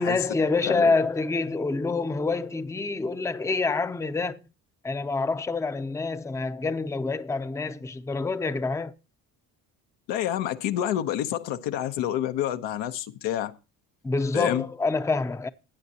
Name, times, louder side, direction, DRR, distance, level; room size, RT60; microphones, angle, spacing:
voice 1, 0.0-4.4 4.8-8.9 14.0-15.5, left 3 dB, 5° left, 0.6 m, -27 dB
voice 2, 10.1-13.5 14.3-14.6, left 11 dB, 80° left, 0.9 m, -28 dB
16.5 x 9.2 x 2.8 m
supercardioid pair, 70°, 43 cm